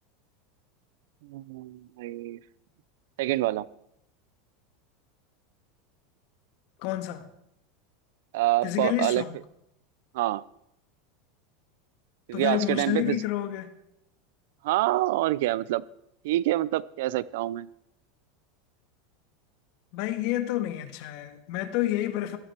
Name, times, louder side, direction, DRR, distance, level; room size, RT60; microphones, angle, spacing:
voice 1, 1.2-2.4 3.2-3.7 8.3-9.2 10.1-10.4 12.3-13.2 14.6-15.8 16.2-17.7, right 16 dB, 75° right, 0.5 m, -26 dB
voice 2, 6.8-7.3 8.6-9.4 12.3-13.7 19.9-22.4, left 14 dB, 60° left, 1.6 m, -29 dB
16.0 x 13.5 x 4.5 m
supercardioid pair, 120°, 0 cm